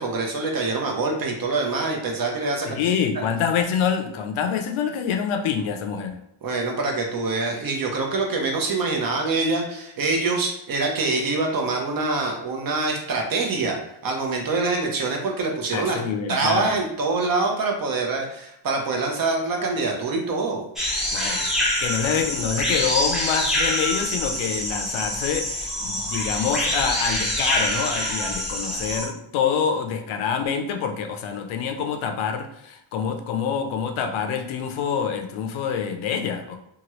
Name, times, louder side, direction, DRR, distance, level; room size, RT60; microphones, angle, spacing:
voice 1, 0.0-2.8 6.4-13.8 14.0-16.0 16.3-20.6, right 3 dB, 45° right, 1 dB, 0.7 m, -25 dB
voice 2, 2.7-6.2 15.7-16.7 21.1-21.5 21.8-36.6, left 7 dB, 80° left, 5 dB, 0.6 m, -26 dB
sound 1, 20.8-29.1, left 1 dB, ahead, 0.6 m, -25 dB
2.9 x 2.3 x 2.9 m, 0.77 s
cardioid pair, 140°, 48 cm